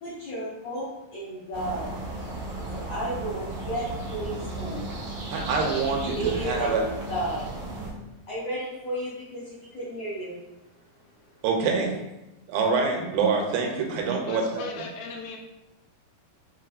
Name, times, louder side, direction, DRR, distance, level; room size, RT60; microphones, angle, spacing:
voice 1, 0.0-1.9 2.7-4.9 6.2-6.8 7.1-7.4 8.3-10.3, right 1 dB, 65° left, -9 dB, 1.7 m, -33 dB
sound 1, 1.5-7.9, right 2 dB, 65° right, 1.5 m, -35 dB
voice 2, 5.3-6.8 11.4-12.0 12.5-14.7, right 4 dB, 90° right, 2 dB, 2.6 m, -25 dB
voice 3, 14.2-15.4, left 3 dB, 85° left, 1 dB, 1.9 m, -37 dB
6.4 x 3.0 x 2.5 m, 0.95 s
omnidirectional pair, 4.4 m